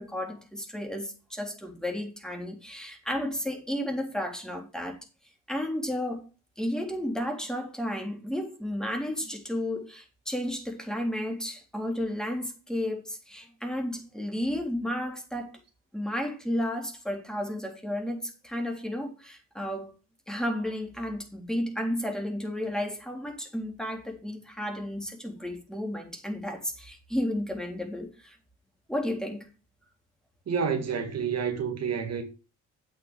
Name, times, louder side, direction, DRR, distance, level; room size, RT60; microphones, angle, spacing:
voice 1, 0.0-5.0 5.5-6.3 6.6-15.6 15.9-19.9 20.3-28.4 28.9-29.5, left 1 dB, ahead, 3.5 m, -32 dB
voice 2, 30.5-32.2, right 6 dB, 55° right, 2.0 m, -29 dB
8.5 x 6.4 x 6.4 m
cardioid pair, 90°, 30 cm